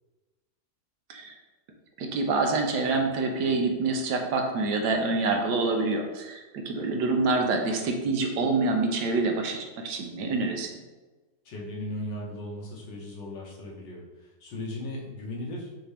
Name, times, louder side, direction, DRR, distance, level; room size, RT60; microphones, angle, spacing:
voice 1, 2.0-10.7, right 3 dB, 75° right, 3 dB, 1.2 m, -26 dB
voice 2, 11.5-15.7, left 1 dB, 90° left, -3 dB, 1.7 m, -37 dB
5.8 x 2.7 x 3.3 m, 1.2 s
omnidirectional pair, 1.9 m